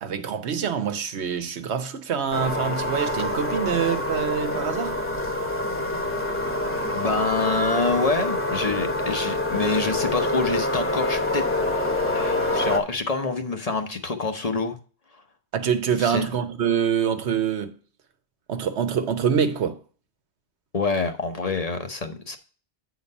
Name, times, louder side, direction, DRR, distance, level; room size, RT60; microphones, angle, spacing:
voice 1, 0.0-5.0 15.5-17.7 18.5-19.8, right 7 dB, 85° right, 1.2 m, -25 dB
sound 1, 2.3-12.8, left 1 dB, 15° left, 0.9 m, -26 dB
voice 2, 6.9-11.4 12.1-14.8 16.0-16.3 20.7-22.4, left 3 dB, 40° left, 0.8 m, -26 dB
8.4 x 4.0 x 5.3 m
omnidirectional pair, 1.1 m